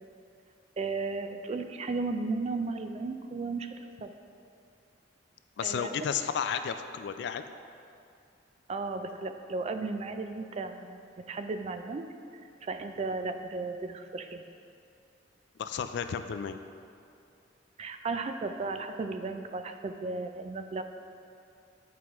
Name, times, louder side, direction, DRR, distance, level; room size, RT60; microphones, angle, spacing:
voice 1, 0.8-3.7 4.0-4.1 5.6-6.0 8.7-12.1 12.6-14.4 17.8-20.8, right 3 dB, 35° right, 7 dB, 0.3 m, -35 dB
voice 2, 5.6-7.4 15.6-16.6, left 7 dB, 65° left, 9 dB, 0.3 m, -32 dB
9.4 x 4.7 x 3.0 m, 2.5 s
head